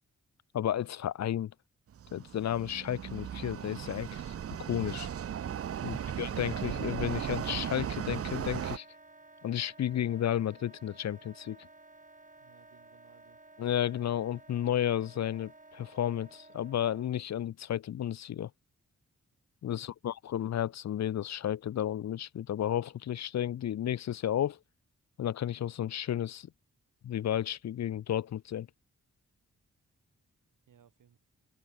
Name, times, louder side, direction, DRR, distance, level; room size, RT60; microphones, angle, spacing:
voice 1, 0.5-1.5 2.1-4.2 4.6-5.1 5.8-8.9 9.4-11.6 13.6-18.5 19.6-24.6 25.2-26.5 27.0-28.7, left 10 dB, 60° left, 0.5 m, -32 dB
sound 1, 1.9-8.8, right 9 dB, 50° right, 0.5 m, -36 dB
Wind instrument woodwind instrument, 7.0-17.1, right 2 dB, 25° right, 6.1 m, -55 dB
voice 2, 12.4-13.4 19.7-19.9 30.7-31.2, right 9 dB, 85° right, 3.7 m, -63 dB
open air
cardioid pair, 60°, 31 cm